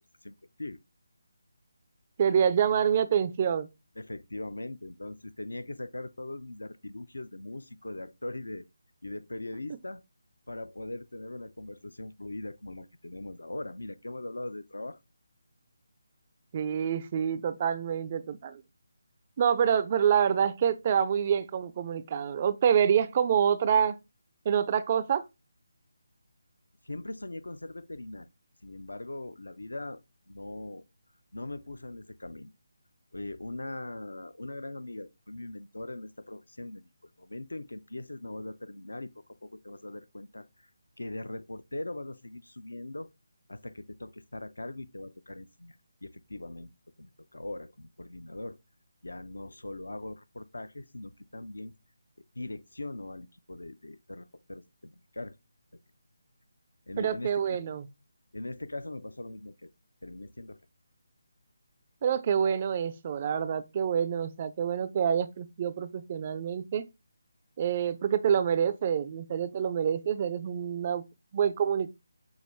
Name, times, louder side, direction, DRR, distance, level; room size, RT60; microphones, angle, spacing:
voice 1, 0.2-0.8 4.0-8.7 9.0-10.0 10.5-15.0 26.8-28.3 28.6-30.0 30.3-30.8 31.3-32.5 33.1-39.1 39.4-40.7 41.0-43.1 43.5-46.7 47.0-48.6 49.0-51.7 52.4-55.4 56.9-57.6 58.3-59.7 60.0-60.6, left 2 dB, 75° left, 0.4 m, -40 dB
voice 2, 2.2-3.7 16.5-18.6 19.4-24.0 24.5-25.2 57.0-57.9 62.0-66.9 67.6-71.0 71.3-71.9, right 8 dB, 30° right, 0.3 m, -27 dB
6.3 x 2.5 x 3.0 m
figure-of-eight pair, 150°, 0 cm